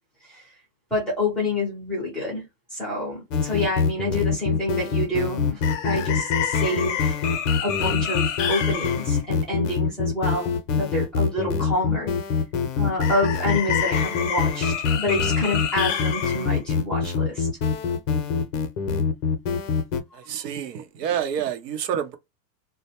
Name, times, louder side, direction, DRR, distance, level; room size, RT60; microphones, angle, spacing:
voice 1, 0.9-7.1 7.6-12.1 12.8-17.5, left 1 dB, ahead, 0.6 m, -28 dB
sound 1, 3.3-20.0, left 6 dB, 50° left, 0.6 m, -24 dB
voice 2, 20.1-22.2, right 9 dB, 80° right, 0.8 m, -28 dB
2.1 x 2.1 x 2.8 m
supercardioid pair, 155°, 48 cm